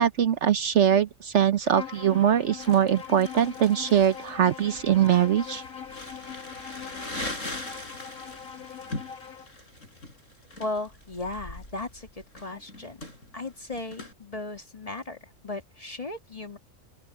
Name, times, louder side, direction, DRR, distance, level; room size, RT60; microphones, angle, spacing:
voice 1, 0.0-5.6, right 9 dB, 60° right, 1.0 m, -22 dB
Bowed string instrument, 1.6-9.5, left 7 dB, 85° left, 2.0 m, -41 dB
Crumpling crinkling, 2.6-14.1, left 1 dB, 65° left, 6.9 m, -41 dB
voice 2, 10.6-13.1 13.3-16.6, left 2 dB, 25° left, 1.8 m, -36 dB
open air
omnidirectional pair, 1.4 m